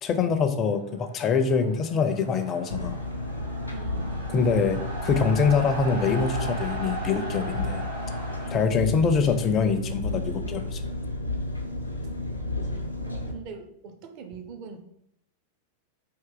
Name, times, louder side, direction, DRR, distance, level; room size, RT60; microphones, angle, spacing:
voice 1, 0.0-3.0 4.3-7.8 8.5-10.8, left 5 dB, 30° left, 9 dB, 0.5 m, -24 dB
sound 1, 0.8-8.5, right 2 dB, 80° right, 1.2 m, -38 dB
Engine, 2.7-13.3, left 2 dB, 90° left, 0.6 m, -32 dB
voice 2, 3.7-4.2 8.7-9.5 12.4-14.8, right 4 dB, 45° right, 6 dB, 0.6 m, -42 dB
4.6 x 2.7 x 3.7 m, 0.76 s
figure-of-eight pair, 90°, 0 cm